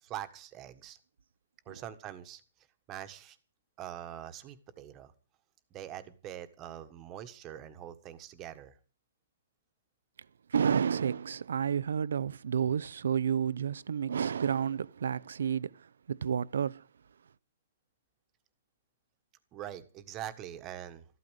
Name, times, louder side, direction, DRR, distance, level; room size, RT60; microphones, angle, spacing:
voice 1, 0.0-1.0 1.6-2.4 2.9-3.4 3.8-5.1 5.7-8.8 19.5-21.0, right 11 dB, 20° right, 1.5 m, -43 dB
voice 2, 10.5-16.9, right 7 dB, 80° right, 0.7 m, -30 dB
14.5 x 12.5 x 6.5 m
hypercardioid pair, 165°, 0 cm